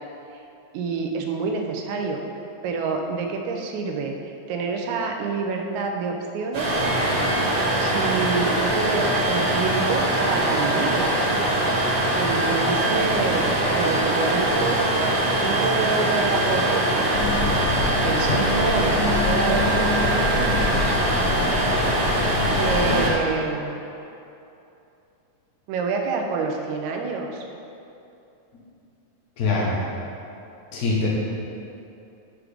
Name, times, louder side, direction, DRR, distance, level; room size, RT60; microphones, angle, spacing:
voice 1, 0.7-2.2 2.6-4.2 4.5-6.8 7.7-11.3 12.2-17.1 18.0-21.0 22.6-23.8 25.7-27.5, right 4 dB, 80° right, 2 dB, 2.0 m, -27 dB
sound 1, 6.5-23.1, right 1 dB, 60° right, 2.4 m, -22 dB
sound 2, 17.1-23.1, left 3 dB, 85° left, 2.2 m, -27 dB
voice 2, 29.4-29.7 30.7-31.1, left 3 dB, 70° left, -5 dB, 0.8 m, -23 dB
6.2 x 4.8 x 4.9 m, 2.7 s
omnidirectional pair, 3.5 m